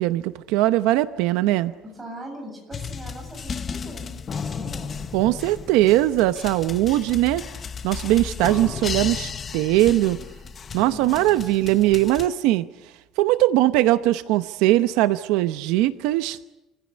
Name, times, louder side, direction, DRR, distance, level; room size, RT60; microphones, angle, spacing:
voice 1, 0.0-1.7 5.1-7.4 7.8-10.2 10.7-12.6 13.2-16.4, right 15 dB, 85° right, 12 dB, 0.9 m, -20 dB
voice 2, 1.8-5.0 10.8-11.6, equal, 10° right, 1 dB, 7.7 m, -41 dB
sound 1, 2.7-12.3, left 6 dB, 25° left, 0.9 m, -34 dB
28.5 x 16.0 x 9.9 m, 0.98 s
cardioid pair, 180°, 0 cm